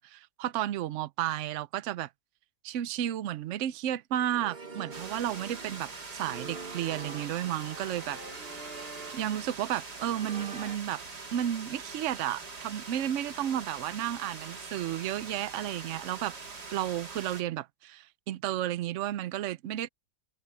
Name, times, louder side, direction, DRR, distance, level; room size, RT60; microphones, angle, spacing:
voice 1, 0.0-2.1 2.6-8.2 9.1-11.0 11.3-16.4 16.7-19.9, right 12 dB, 65° right, 0.8 m, -32 dB
sound 1, 4.2-10.8, right 3 dB, 35° right, 2.0 m, -45 dB
sound 2, 4.9-17.4, right 4 dB, 85° right, 3.6 m, -43 dB
omnidirectional pair, 1.7 m